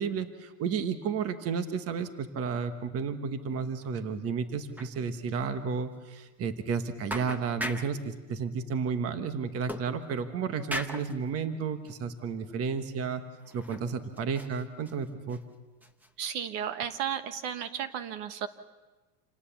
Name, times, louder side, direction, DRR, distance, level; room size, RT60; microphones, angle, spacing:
voice 1, 0.0-13.2 13.5-15.4, right 6 dB, 30° right, 9 dB, 1.3 m, -32 dB
sound 1, 3.5-3.9 4.1-4.2 4.7-4.9 5.3-5.5 5.9-6.0 6.7-6.8 7.1-8.0 9.7-10.3 10.7-11.1 11.8-12.0 12.5-12.6 13.4-13.9 14.2-15.4 15.8-16.1, equal, 5° right, 0.8 m, -39 dB
voice 2, 16.2-18.5, right 9 dB, 55° right, 10 dB, 1.4 m, -34 dB
28.0 x 18.5 x 7.2 m, 1.2 s
supercardioid pair, 150°, 50 cm